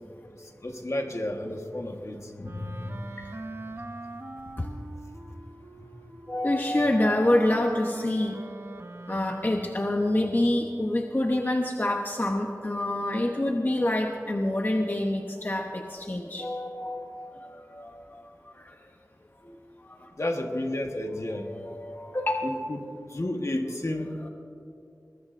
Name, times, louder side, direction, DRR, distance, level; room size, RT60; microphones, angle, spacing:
voice 1, 0.4-2.3 20.2-21.5 22.4-22.8 23.1-24.2, left 1 dB, 55° left, 3 dB, 1.4 m, -31 dB
voice 2, 2.4-3.3 4.6-4.7 6.3-8.4 9.1-18.2 18.5-18.8 19.4-20.1 21.3-22.4 24.2-24.3, left 1 dB, 30° left, 2 dB, 0.9 m, -27 dB
Wind instrument woodwind instrument, 2.4-9.9, right 2 dB, 45° right, 0.8 m, -42 dB
21.5 x 20.0 x 2.6 m, 2.7 s
wide cardioid pair, 60°, 6 cm